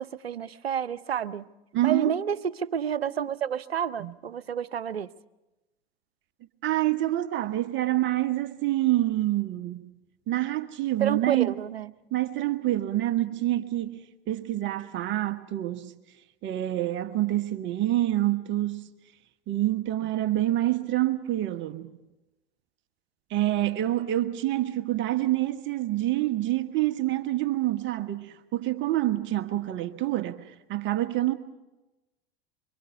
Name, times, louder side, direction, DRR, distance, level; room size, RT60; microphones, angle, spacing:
voice 1, 0.0-1.5 1.8-5.1 11.0-11.9, right 8 dB, 85° right, 0.7 m, -29 dB
voice 2, 1.7-2.1 4.0-4.1 6.6-9.8 10.3-11.6 12.1-15.9 16.4-18.9 19.5-21.9 23.3-31.3, right 15 dB, 40° right, 1.3 m, -27 dB
25.0 x 24.0 x 5.7 m
figure-of-eight pair, 85°, 30 cm